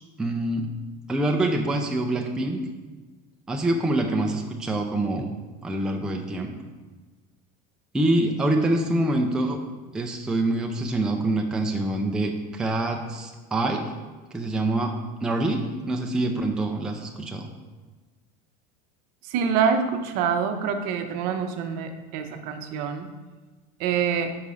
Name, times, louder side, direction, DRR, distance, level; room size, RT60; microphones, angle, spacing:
voice 1, 0.2-0.7 1.1-2.6 3.5-5.3 5.6-6.5 7.9-9.6 9.9-13.9 14.3-14.9 15.2-17.5, right 1 dB, 5° right, 2 dB, 0.4 m, -25 dB
voice 2, 19.3-23.1 23.8-24.4, right 7 dB, 55° right, 6 dB, 0.7 m, -26 dB
5.4 x 4.7 x 5.0 m, 1.3 s
cardioid pair, 160°, 18 cm